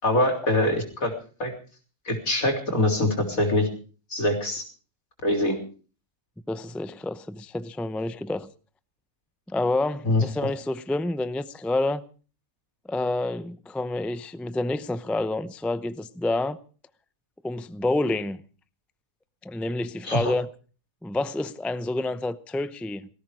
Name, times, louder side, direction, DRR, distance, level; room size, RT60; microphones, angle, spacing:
voice 1, 0.0-1.1 1.4-1.5 2.1-3.7 4.1-4.6 5.2-5.6 10.0-10.5 20.0-20.3, left 1 dB, 75° left, 4.0 m, -24 dB
voice 2, 6.5-8.5 9.5-12.0 12.9-16.6 17.4-18.4 19.4-20.5 21.0-23.1, left 2 dB, ahead, 0.3 m, -28 dB
18.0 x 15.0 x 4.9 m
omnidirectional pair, 1.5 m